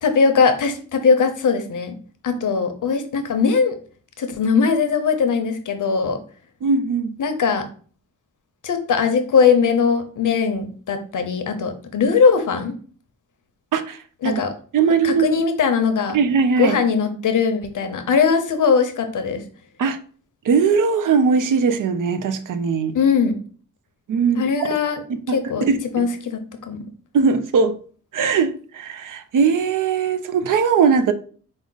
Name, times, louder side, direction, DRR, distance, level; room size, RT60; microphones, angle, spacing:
voice 1, 0.0-1.9 2.2-3.7 4.2-6.2 7.2-7.6 8.6-12.7 14.2-14.5 15.0-16.2 16.6-19.4 22.9-23.3 24.4-25.0 25.3-25.7 25.9-26.8, left 5 dB, 75° left, 0.7 m, -20 dB
voice 2, 6.6-7.1 13.7-14.4 14.7-15.4 16.1-16.8 19.8-20.0 20.4-23.0 24.1-24.7 25.1-26.1 27.1-27.7 28.1-31.1, right 5 dB, 80° right, 0.5 m, -20 dB
4.8 x 2.0 x 3.9 m
cardioid pair, 75°, 31 cm